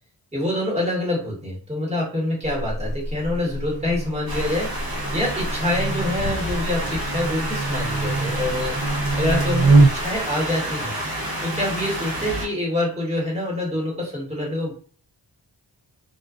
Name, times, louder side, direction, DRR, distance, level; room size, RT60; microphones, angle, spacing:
voice 1, 0.3-4.9 5.1-8.7 9.2-10.9 11.4-14.7, left 1 dB, 15° right, -4 dB, 1.3 m, -26 dB
Buzz, 2.4-10.2, right 3 dB, 80° right, 0.6 m, -24 dB
sound 1, 4.3-12.5, right 1 dB, 55° right, 1.0 m, -29 dB
2.5 x 2.4 x 2.4 m, 0.43 s
wide cardioid pair, 60°, 43 cm